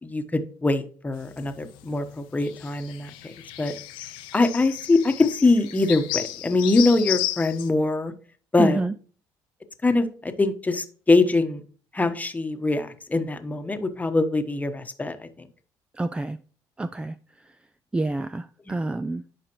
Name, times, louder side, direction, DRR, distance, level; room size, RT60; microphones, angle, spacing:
voice 1, 0.0-3.3 3.6-3.7 4.3-8.1 8.5-8.8 9.8-11.6 11.9-15.3, left 3 dB, 20° left, 1.1 m, -23 dB
sound 1, 1.2-7.7, left 15 dB, 90° left, 0.7 m, -34 dB
voice 2, 8.6-9.0 15.9-16.4 16.8-17.2 17.4-17.5 17.9-19.2, right 2 dB, 10° right, 0.4 m, -27 dB
11.0 x 5.0 x 3.0 m
supercardioid pair, 80°, 8 cm